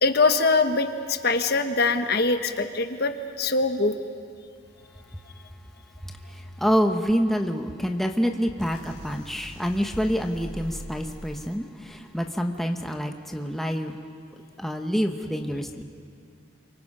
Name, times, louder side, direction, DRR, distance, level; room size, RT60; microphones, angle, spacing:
voice 1, 0.0-4.0, left 3 dB, 50° left, 8 dB, 1.1 m, -23 dB
voice 2, 6.6-13.9 14.6-15.8, equal, ahead, 3 dB, 0.9 m, -27 dB
sound 1, 8.6-11.5, equal, 85° left, 3.9 m, -42 dB
29.5 x 24.5 x 5.5 m, 2.3 s
head